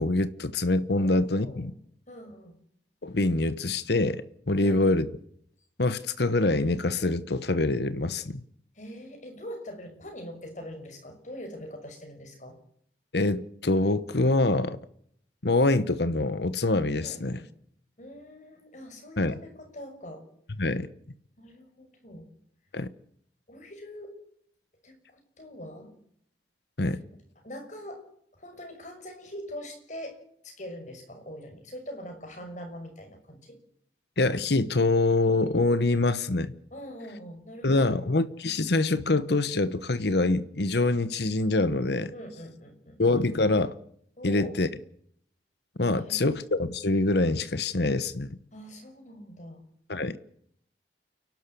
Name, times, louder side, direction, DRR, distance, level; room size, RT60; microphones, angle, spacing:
voice 1, 0.0-1.7 3.0-5.1 5.8-8.4 13.1-14.8 15.4-17.4 19.2-19.3 20.6-20.9 22.7-22.9 26.8-27.0 34.2-36.5 37.6-42.1 43.0-43.7 44.2-44.7 45.8-48.4 49.9-50.2, left 2 dB, 65° left, 1.1 m, -25 dB
voice 2, 0.9-1.8 2.1-2.6 4.5-4.8 8.7-12.6 17.0-17.5 18.0-20.3 21.4-22.3 23.5-24.2 24.8-25.9 27.4-33.6 36.7-38.0 42.1-43.0 44.2-44.6 45.9-46.4 48.5-49.7, equal, 40° left, 6.1 m, -43 dB
29.0 x 12.0 x 8.5 m
head